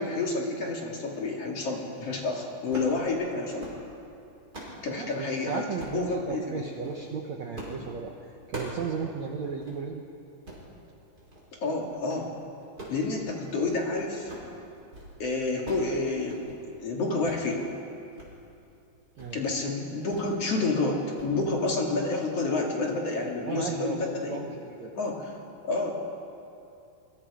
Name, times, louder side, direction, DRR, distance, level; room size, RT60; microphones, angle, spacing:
voice 1, 0.0-3.7 4.8-5.6 5.9-6.6 11.5-12.3 12.9-14.3 15.2-16.5 16.8-17.7 19.3-24.4 24.9-25.3 25.6-25.9, left 3 dB, 40° left, -1 dB, 3.0 m, -29 dB
sound 1, 2.7-3.0 3.4-3.8 4.2-4.8 5.8-6.1 6.7-7.0 7.6-7.8 8.1-8.9 9.2-9.3 9.6-9.8 10.3-10.7 11.2-11.5 11.8-12.2 12.6-13.9 14.1-14.5 14.8-15.1 15.4-15.9 16.2-16.6 17.2-17.4 17.8-18.3 18.6-18.7 19.1-19.4 20.1-20.3 20.7-20.9 21.2-21.3, right 1 dB, 20° right, 5.6 m, -42 dB
voice 2, 4.9-10.0 19.2-19.4 23.5-24.9, right 6 dB, 85° right, 2 dB, 1.5 m, -35 dB
27.0 x 24.0 x 5.0 m, 2.7 s
omnidirectional pair, 4.9 m